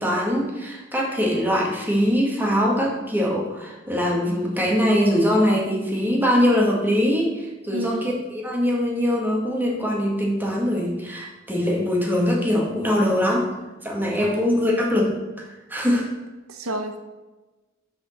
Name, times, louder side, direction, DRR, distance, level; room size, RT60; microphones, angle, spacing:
voice 1, 0.0-8.1 8.4-13.5 13.8-16.1, equal, 10° right, -2 dB, 1.6 m, -22 dB
voice 2, 7.7-8.2 14.2-14.6 16.5-17.0, right 1 dB, 75° right, 6 dB, 0.9 m, -30 dB
6.3 x 5.0 x 6.4 m, 1.1 s
head